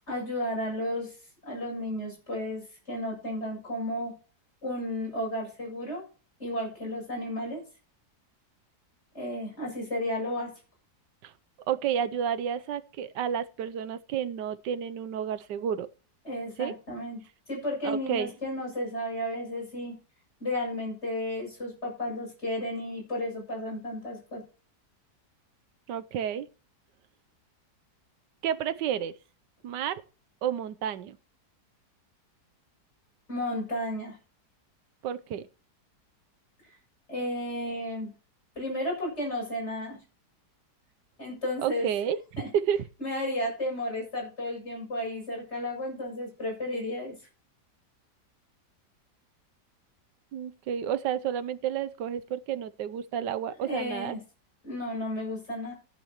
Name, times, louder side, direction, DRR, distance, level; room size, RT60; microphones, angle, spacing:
voice 1, 0.1-1.1 1.4-4.1 4.6-6.0 6.4-7.6 9.1-10.5 16.2-17.2 17.5-20.0 20.4-24.4 33.3-34.2 37.1-38.1 38.5-40.0 41.2-41.9 42.4-42.5 43.0-47.1 53.6-54.2 54.6-55.7, left 1 dB, 40° left, 7.7 m, -33 dB
voice 2, 11.7-15.9 16.6-16.7 17.8-18.3 25.9-26.5 28.4-29.1 29.6-30.0 30.4-31.2 35.0-35.5 41.6-42.2 42.5-42.8 50.3-54.1, right 9 dB, 90° right, 1.4 m, -30 dB
14.5 x 10.0 x 3.0 m
omnidirectional pair, 1.8 m